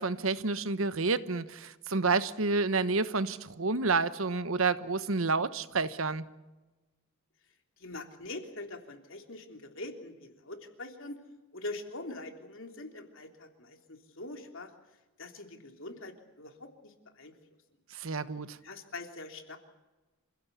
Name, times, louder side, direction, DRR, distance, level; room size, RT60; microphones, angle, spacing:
voice 1, 0.0-6.2 17.9-18.6, right 4 dB, 65° right, 1.1 m, -29 dB
voice 2, 7.8-11.2 11.5-14.7 15.2-17.3 18.6-19.6, left 2 dB, 60° left, 3.4 m, -43 dB
27.5 x 16.5 x 8.4 m
head